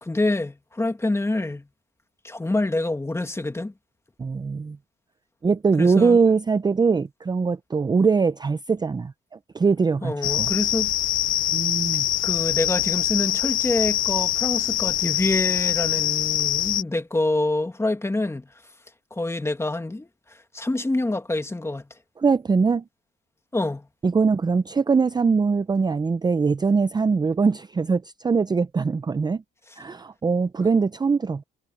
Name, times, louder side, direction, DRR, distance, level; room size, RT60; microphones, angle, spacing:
voice 1, 0.0-1.7 2.2-3.7 5.8-6.2 10.0-10.9 12.2-18.5 19.1-21.9 23.5-23.9, left 2 dB, 15° left, 1.8 m, -26 dB
voice 2, 4.2-4.8 5.4-10.5 11.5-12.1 22.2-22.8 24.0-29.4 29.8-31.4, right 5 dB, 20° right, 0.5 m, -22 dB
sound 1, 10.2-16.8, left 13 dB, 80° left, 0.8 m, -24 dB
cardioid pair, 90°, 20 cm